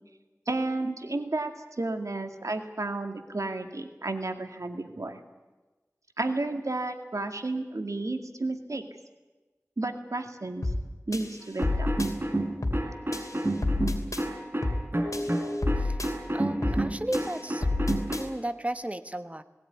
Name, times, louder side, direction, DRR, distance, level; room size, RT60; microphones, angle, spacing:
voice 1, 0.5-1.5 1.8-5.2 6.2-8.8 9.8-10.7 11.1-11.9, right 2 dB, 80° right, 6 dB, 2.1 m, -32 dB
sound 1, 10.6-10.9 11.1-12.1 12.6-12.9 13.1-14.2 14.6-14.9 15.1-16.1 16.6-16.9 17.1-18.2, left 2 dB, 85° left, 2.8 m, -29 dB
sound 2, 11.6-18.2, right 1 dB, 40° right, 4.0 m, -30 dB
voice 2, 16.3-17.7 18.2-19.4, right 1 dB, 25° right, 10 dB, 1.2 m, -34 dB
19.5 x 17.5 x 9.7 m, 1.2 s
wide cardioid pair, 45°, 5 cm